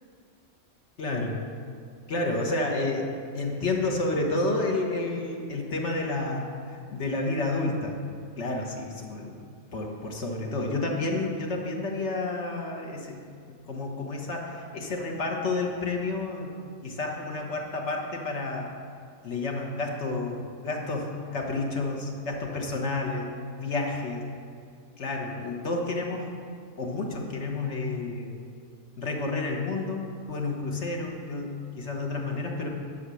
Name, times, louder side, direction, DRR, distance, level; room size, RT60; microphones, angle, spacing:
voice 1, 1.0-1.3 2.1-3.1 3.3-8.0 8.4-9.4 9.7-13.2 13.5-18.7 19.2-23.3 23.6-24.2 25.0-26.3 26.8-28.3 29.0-32.7, left 2 dB, 60° left, 0 dB, 1.5 m, -30 dB
10.0 x 6.7 x 6.3 m, 2.3 s
omnidirectional pair, 1.4 m